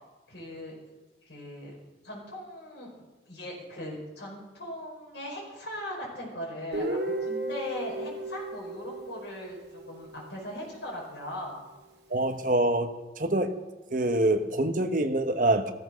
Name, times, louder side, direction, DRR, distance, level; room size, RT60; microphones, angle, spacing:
voice 1, 0.3-0.8 1.2-1.8 2.0-11.6, equal, 75° left, -3 dB, 5.2 m, -39 dB
Guitar, 6.7-10.6, right 1 dB, 70° right, 2.6 m, -35 dB
voice 2, 12.1-12.9 13.2-13.5 13.9-15.7, right 1 dB, 45° right, 7 dB, 1.2 m, -25 dB
15.5 x 13.5 x 6.4 m, 1.1 s
head